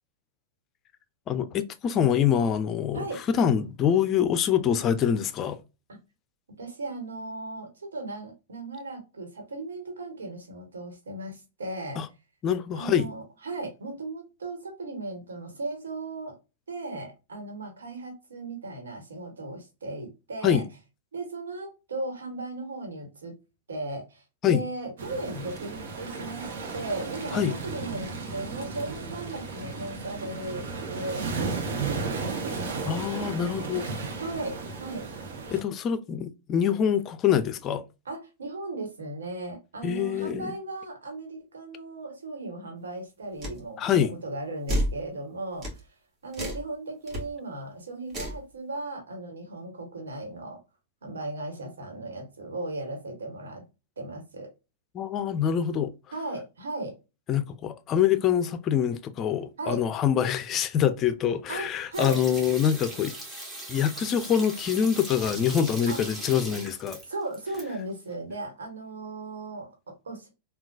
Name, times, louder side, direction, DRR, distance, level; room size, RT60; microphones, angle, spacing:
voice 1, 1.3-5.6 12.0-12.1 12.4-13.1 20.4-20.6 24.4-24.6 27.3-27.5 32.9-33.9 35.5-37.8 39.8-40.5 43.8-44.1 54.9-55.9 57.3-63.1 63.7-67.0, left 8 dB, 35° left, 0.4 m, -25 dB
voice 2, 6.6-12.0 12.7-16.4 16.7-20.6 21.1-23.3 23.7-33.0 34.2-35.1 38.0-45.9 46.2-50.6 51.0-53.6 54.0-54.5 56.1-56.9 59.6-59.8 61.5-62.2 65.9-66.0 67.1-70.3, right 2 dB, 90° right, 1.3 m, -37 dB
sound 1, 25.0-35.6, right 4 dB, 70° right, 0.9 m, -34 dB
sound 2, 43.4-43.6 44.7-45.0 45.6-45.8 46.3-46.7 47.1-47.2 48.1-48.4, equal, 30° right, 1.5 m, -29 dB
sound 3, 61.9-67.6 67.9-68.0, right 1 dB, 15° right, 1.3 m, -39 dB
3.7 x 2.3 x 2.3 m
hypercardioid pair, 110°, 0 cm